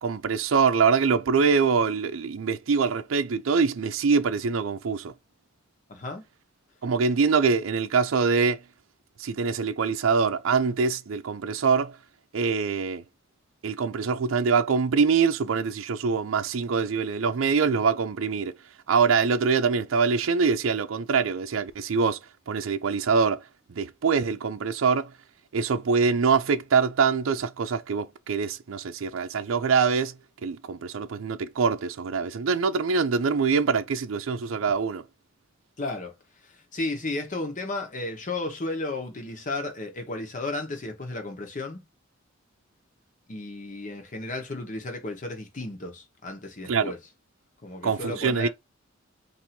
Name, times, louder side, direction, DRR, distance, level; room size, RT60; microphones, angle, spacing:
voice 1, 0.0-5.1 6.8-8.6 9.2-12.0 12.3-13.0 13.6-18.5 18.9-22.2 22.5-23.4 23.7-25.1 25.5-30.2 30.4-35.0 46.7-46.9 47.8-48.5, right 5 dB, 85° right, 0.5 m, -24 dB
voice 2, 5.9-6.2 35.8-36.1 36.4-41.8 43.3-47.0 47.6-48.5, left 2 dB, 40° left, 1.0 m, -33 dB
2.7 x 2.7 x 4.2 m
head